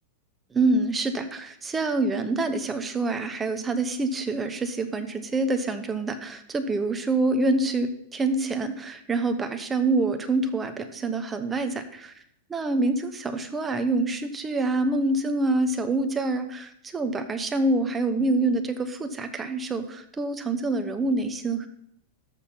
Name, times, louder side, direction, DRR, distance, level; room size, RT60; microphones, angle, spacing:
voice 1, 0.5-12.1 12.5-21.7, right 2 dB, 10° right, 8 dB, 0.9 m, -26 dB
13.0 x 6.5 x 5.6 m, 0.71 s
supercardioid pair, 160°, 0 cm